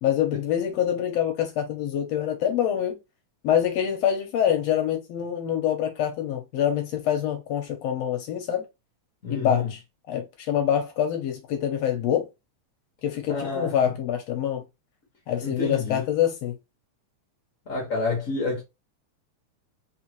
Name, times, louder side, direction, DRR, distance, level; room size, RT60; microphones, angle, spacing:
voice 1, 0.0-3.0 3.4-8.7 9.3-9.8 10.1-12.3 13.0-14.6 15.3-16.6, left 10 dB, 70° left, 1.8 m, -25 dB
voice 2, 9.2-9.7 13.3-13.7 15.4-16.0 17.7-18.6, left 3 dB, 40° left, 1.2 m, -28 dB
4.2 x 3.6 x 3.0 m
omnidirectional pair, 3.4 m